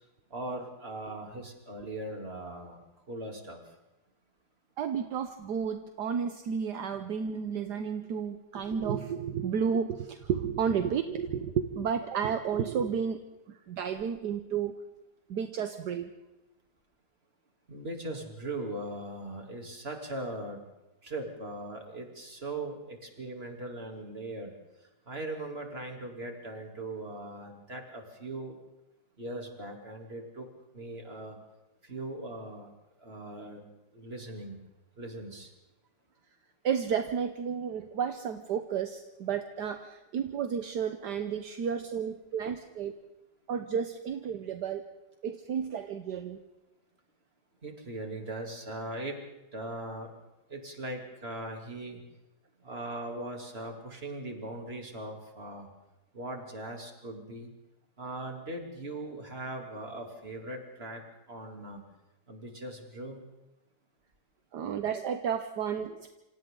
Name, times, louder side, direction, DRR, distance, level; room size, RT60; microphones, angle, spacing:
voice 1, 0.3-2.8 3.1-3.6 17.7-20.6 21.0-24.5 25.1-28.6 29.2-30.5 30.7-31.4 31.8-32.7 33.0-33.6 33.9-34.6 35.0-35.5 47.6-49.2 49.5-50.1 50.5-52.0 52.6-55.7 56.1-57.5 58.0-61.0 61.3-61.8 62.3-63.2, right 2 dB, 35° right, 2 dB, 3.4 m, -39 dB
voice 2, 4.8-13.2 13.5-14.8 15.3-16.1 36.6-43.0 43.5-44.9 45.2-46.4 64.5-66.1, right 7 dB, 70° right, 7 dB, 1.5 m, -32 dB
27.5 x 26.5 x 3.9 m, 0.97 s
omnidirectional pair, 1.9 m